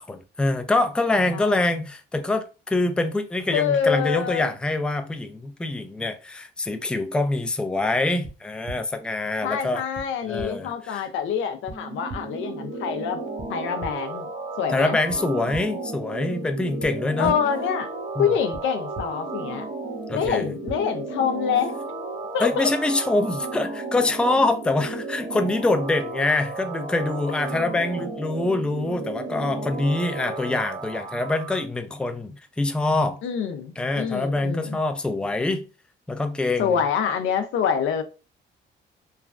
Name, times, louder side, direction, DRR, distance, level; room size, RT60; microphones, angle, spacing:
voice 1, 0.0-9.8 10.2-11.1 14.7-17.3 18.2-18.3 20.1-20.5 22.4-33.2 33.8-35.6 36.1-36.7, left 2 dB, 5° left, 0.3 m, -25 dB
voice 2, 3.5-4.5 9.4-13.2 13.5-14.3 14.6-15.0 17.2-17.9 18.2-19.7 20.1-21.7 22.3-22.7 33.2-34.8 36.6-38.0, left 7 dB, 80° left, 0.5 m, -26 dB
sound 1, 8.2-8.3 8.7-8.8 9.9-10.0 10.4-10.5 11.7-11.8 12.1-12.2 13.4-13.5 13.8-13.9 15.1-15.2 15.5-15.6 16.8-16.9 17.2-17.3 18.5-18.6 18.9-19.0 20.2-20.3 20.7-20.8, right 2 dB, 30° right, 0.8 m, -35 dB
sound 2, 11.7-31.6, right 3 dB, 65° right, 1.1 m, -34 dB
3.1 x 2.3 x 2.4 m
cardioid pair, 90°, 20 cm